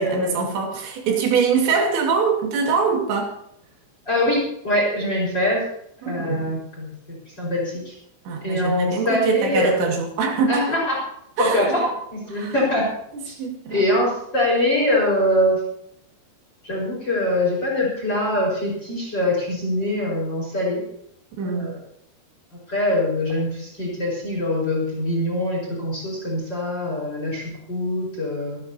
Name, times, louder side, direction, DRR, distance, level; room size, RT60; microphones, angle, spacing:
voice 1, 0.0-3.3 6.0-6.6 8.3-10.8 11.4-11.8 12.3-12.5 13.1-13.9 21.4-21.7, right 5 dB, 80° right, 1 dB, 4.5 m, -23 dB
voice 2, 4.1-5.6 6.0-6.9 7.4-7.9 8.4-10.0 10.5-10.9 11.4-12.9 13.3-13.4 13.7-15.6 16.6-20.8 21.4-21.7 22.7-28.6, left 1 dB, 25° left, -3 dB, 5.5 m, -23 dB
28.0 x 11.5 x 2.9 m, 0.75 s
omnidirectional pair, 5.1 m